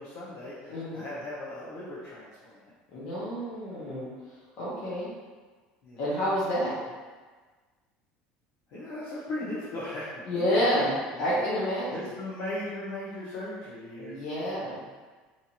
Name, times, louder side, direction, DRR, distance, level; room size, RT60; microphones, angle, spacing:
voice 1, 0.0-2.7 5.8-6.0 6.6-6.8 8.7-10.1 10.3-10.5 11.1-11.5 11.9-14.2, left 1 dB, 70° left, -10 dB, 0.8 m, -38 dB
voice 2, 0.7-1.1 2.9-4.1 4.6-5.1 6.0-6.8 10.3-12.0 14.0-14.8, equal, 40° left, -10 dB, 0.7 m, -29 dB
2.8 x 2.4 x 2.8 m, 1.4 s
cardioid pair, 160°, 3 cm